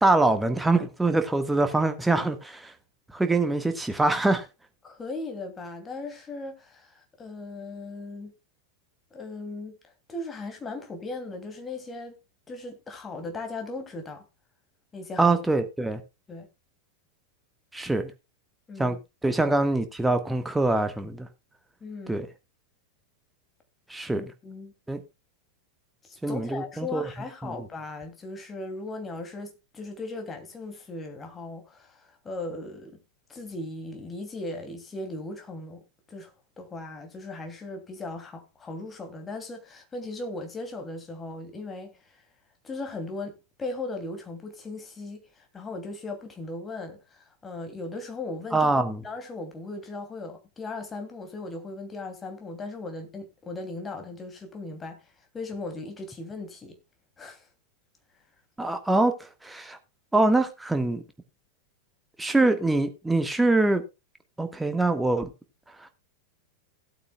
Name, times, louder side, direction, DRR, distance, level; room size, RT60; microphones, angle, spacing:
voice 1, 0.0-2.7 3.1-4.5 15.2-16.0 17.7-18.1 18.8-19.0 19.2-21.3 22.1-22.3 23.9-24.2 24.9-25.0 26.2-27.0 27.4-27.6 48.5-49.0 58.6-59.1 59.4-59.8 60.1-61.0 62.2-63.8 64.4-65.3, right 2 dB, 5° right, 1.6 m, -24 dB
voice 2, 4.8-8.3 9.1-9.7 10.1-12.1 12.5-14.2 14.9-15.4 16.3-16.5 18.7-19.0 21.8-22.2 24.1-24.7 26.0-33.0 33.3-42.2 42.6-48.7 49.0-56.8 57.2-57.5, left 2 dB, 15° left, 2.8 m, -38 dB
17.0 x 8.6 x 2.3 m
figure-of-eight pair, 90°, 0 cm